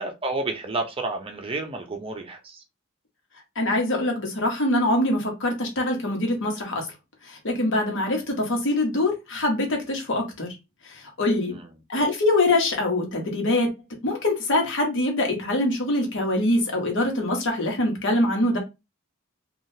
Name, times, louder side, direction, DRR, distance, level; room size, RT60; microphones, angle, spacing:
voice 1, 0.0-2.6 11.5-11.7, right 2 dB, 25° right, 0.6 m, -30 dB
voice 2, 3.6-6.9 7.3-10.5 10.8-11.6 11.9-13.7 14.0-18.6, left 1 dB, 65° left, 1.1 m, -24 dB
3.4 x 2.4 x 2.7 m
head